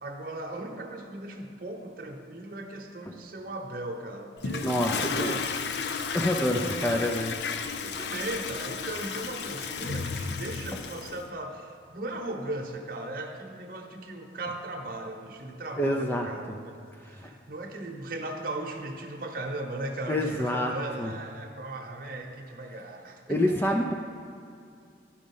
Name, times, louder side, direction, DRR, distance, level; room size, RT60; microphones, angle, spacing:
voice 1, 0.0-5.5 5.7-6.0 6.5-7.1 7.8-23.8, right 2 dB, 50° right, 2 dB, 0.9 m, -38 dB
Toilet flush, 4.4-11.2, left 5 dB, 70° left, 0.5 m, -33 dB
voice 2, 4.6-5.4 6.1-7.3 10.7-10.8 15.8-16.3 17.1-17.3 20.1-21.1 23.3-23.9, left 1 dB, 10° left, 1 dB, 0.4 m, -27 dB
10.5 x 5.1 x 5.4 m, 2.4 s
head